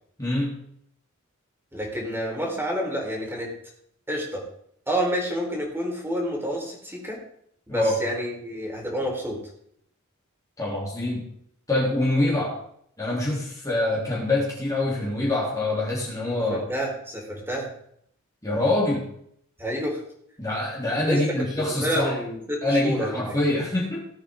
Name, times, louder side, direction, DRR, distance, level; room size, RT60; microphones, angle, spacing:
voice 1, 0.2-0.6 7.7-8.0 10.6-11.3 11.7-12.6 13.0-16.6 18.4-19.1 20.4-22.2 22.6-24.0, left 1 dB, 15° left, -5 dB, 3.3 m, -25 dB
voice 2, 1.7-3.5 4.1-4.4 4.9-7.2 7.7-9.4 16.5-17.7 19.6-20.0 21.1-23.3, equal, 10° right, -2 dB, 4.1 m, -29 dB
18.0 x 8.7 x 3.8 m, 0.69 s
head